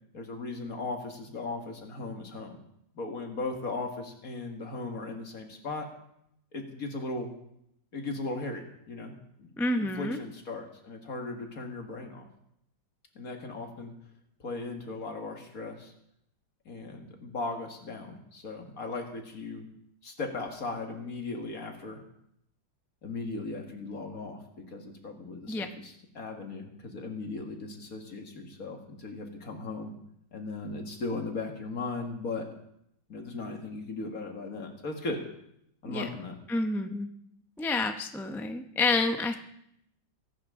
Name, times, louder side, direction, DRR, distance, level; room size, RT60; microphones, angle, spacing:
voice 1, 0.1-2.5 2.9-5.9 6.5-7.3 7.9-9.1 9.4-9.5 9.8-12.3 13.2-13.9 14.4-15.9 16.7-19.6 20.0-22.0 23.0-24.4 24.7-29.9 30.3-32.4 33.1-35.2 35.8-36.3, left 3 dB, 45° left, 3 dB, 2.2 m, -37 dB
voice 2, 9.6-10.2 25.5-25.7 35.8-36.1 36.5-37.1 37.6-39.4, left 3 dB, 5° left, 6 dB, 0.4 m, -29 dB
23.5 x 11.5 x 3.8 m, 0.76 s
omnidirectional pair, 2.1 m